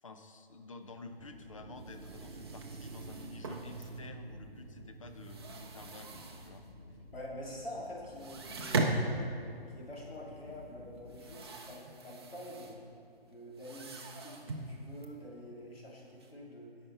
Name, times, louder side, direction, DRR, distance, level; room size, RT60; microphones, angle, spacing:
voice 1, 0.0-6.6, left 3 dB, 35° left, 7 dB, 0.6 m, -51 dB
sound 1, 1.1-1.2 1.4-1.5 1.8-4.4 4.7-6.8 7.1-7.2 7.6-7.7 8.0-16.3, right 3 dB, 25° right, 0.6 m, -39 dB
sound 2, 1.2-11.4, left 2 dB, 50° left, 1.2 m, -54 dB
sound 3, 1.2-8.5, right 4 dB, 90° right, 0.7 m, -50 dB
voice 2, 7.1-9.4 9.7-12.9 13.2-16.8, left 1 dB, 70° left, -3 dB, 2.8 m, -46 dB
16.0 x 5.7 x 4.5 m, 2.4 s
figure-of-eight pair, 145°, 31 cm